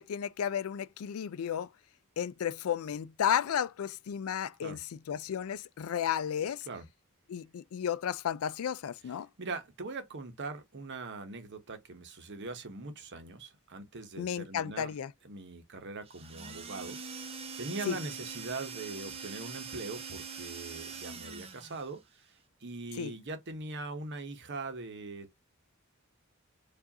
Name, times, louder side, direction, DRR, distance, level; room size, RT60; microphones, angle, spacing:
voice 1, 0.0-1.7 2.2-4.8 5.1-6.7 7.3-9.3 14.2-15.1 17.9-18.0 23.0-23.1, left 9 dB, 75° left, 0.4 m, -33 dB
voice 2, 9.4-15.0 15.2-25.4, right 3 dB, 55° right, 0.9 m, -41 dB
sound 1, 16.0-21.9, right 5 dB, 30° right, 0.7 m, -43 dB
4.7 x 2.5 x 2.7 m
head